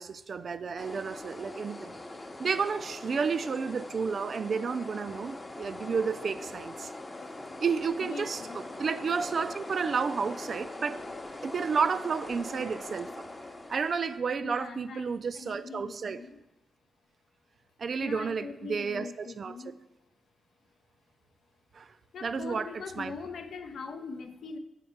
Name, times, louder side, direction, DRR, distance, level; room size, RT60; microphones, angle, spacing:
voice 1, 0.0-2.0 2.4-6.9 7.6-11.0 11.4-13.3 13.7-16.2 17.8-19.6 21.7-21.9 22.2-23.2, right 5 dB, 60° right, 0.3 m, -31 dB
sound 1, 0.8-14.2, left 2 dB, 30° left, 0.7 m, -42 dB
voice 2, 8.0-8.6 14.4-16.4 18.0-19.7 22.1-24.6, left 4 dB, 75° left, 0.5 m, -42 dB
6.6 x 4.2 x 4.4 m
cardioid pair, 60°, 0 cm